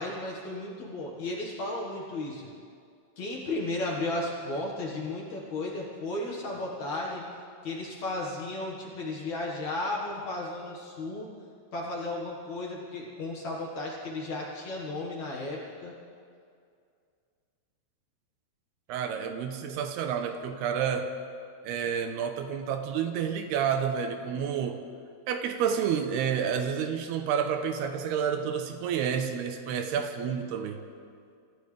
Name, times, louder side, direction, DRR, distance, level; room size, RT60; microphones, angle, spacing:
voice 1, 0.0-2.4 3.2-7.3 7.6-11.3 11.7-15.9, left 2 dB, 55° left, -2 dB, 2.1 m, -34 dB
voice 2, 18.9-21.1 21.6-24.8 25.3-30.8, right 7 dB, 80° right, 7 dB, 2.6 m, -29 dB
27.5 x 15.0 x 3.4 m, 2.3 s
omnidirectional pair, 5.2 m